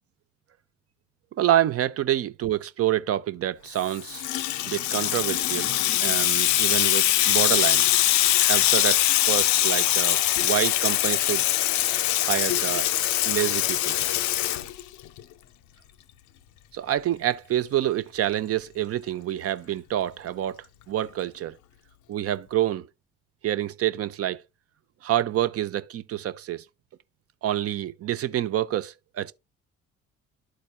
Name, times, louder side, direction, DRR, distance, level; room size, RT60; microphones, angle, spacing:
voice 1, 1.4-4.3 4.7-7.9 8.5-11.4 12.2-12.9 13.2-14.0 16.7-21.5 22.1-22.9 23.4-24.4 25.0-26.6 27.4-29.3, right 12 dB, 45° right, 0.5 m, -27 dB
Water tap faucet / Sink (filling or washing), 3.8-15.2, left 14 dB, 55° left, 0.5 m, -23 dB
12.0 x 4.1 x 2.3 m
hypercardioid pair, 45°, 35 cm